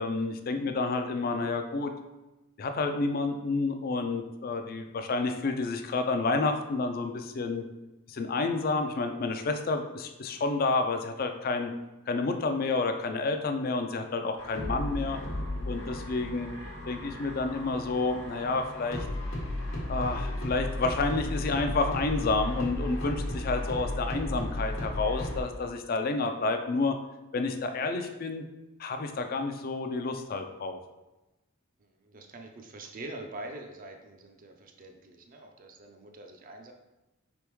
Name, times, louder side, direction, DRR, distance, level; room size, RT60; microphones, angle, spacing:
voice 1, 0.0-1.9 2.6-7.6 8.1-11.7 12.1-15.2 15.7-16.5 16.9-19.1 19.9-27.0 27.3-28.4 28.8-30.8, left 3 dB, 45° left, 6 dB, 0.4 m, -30 dB
sound 1, 14.4-25.4, left 1 dB, 85° left, 1.0 m, -34 dB
voice 2, 31.8-36.7, right 2 dB, 40° right, 3 dB, 0.5 m, -45 dB
4.1 x 3.4 x 3.0 m, 1.0 s
head